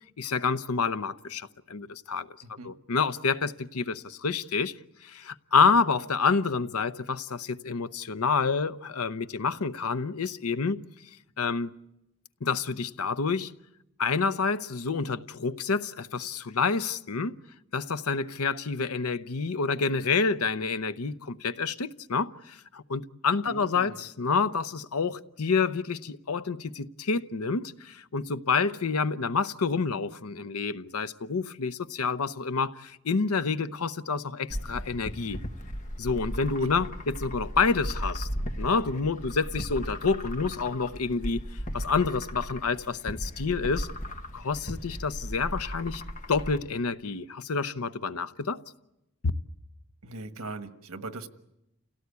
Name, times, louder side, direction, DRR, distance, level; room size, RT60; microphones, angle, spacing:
voice 1, 0.2-2.3 2.6-4.7 5.0-10.8 11.4-11.7 12.4-13.5 14.0-17.4 17.7-35.4 36.0-38.3 38.6-41.4 41.7-43.9 44.3-46.0 46.3-48.6, left 4 dB, 85° left, 0.8 m, -28 dB
voice 2, 2.4-2.7 23.4-24.0 36.6-36.9 50.0-51.3, right 2 dB, 80° right, 1.5 m, -41 dB
sound 1, 34.5-46.6, equal, 35° left, 1.4 m, -36 dB
28.5 x 17.5 x 8.3 m
head